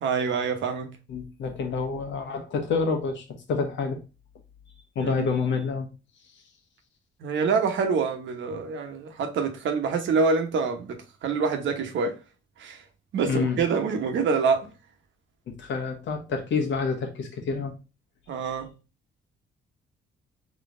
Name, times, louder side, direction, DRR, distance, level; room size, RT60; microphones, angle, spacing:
voice 1, 0.0-1.0 5.0-5.1 7.2-12.2 12.6-12.8 13.1-14.7 18.3-18.7, right 5 dB, 70° right, 1.1 m, -26 dB
voice 2, 1.1-4.0 4.9-5.9 13.2-13.6 15.5-17.7, left 5 dB, 70° left, 1.3 m, -28 dB
4.0 x 3.1 x 3.7 m
cardioid pair, 90°, 20 cm